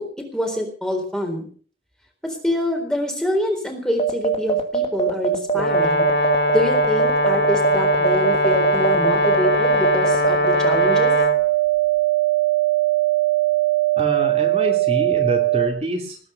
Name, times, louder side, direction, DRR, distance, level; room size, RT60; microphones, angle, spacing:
voice 1, 0.0-1.5 2.2-6.1 6.5-11.1, left 1 dB, 5° left, 3 dB, 3.9 m, -25 dB
sound 1, 4.0-15.7, right 10 dB, 35° left, 1.9 m, -20 dB
Brass instrument, 5.5-11.4, left 1 dB, 80° left, 2.4 m, -21 dB
voice 2, 14.0-16.2, equal, 35° right, 2 dB, 2.9 m, -26 dB
19.5 x 9.6 x 6.8 m, 0.43 s
head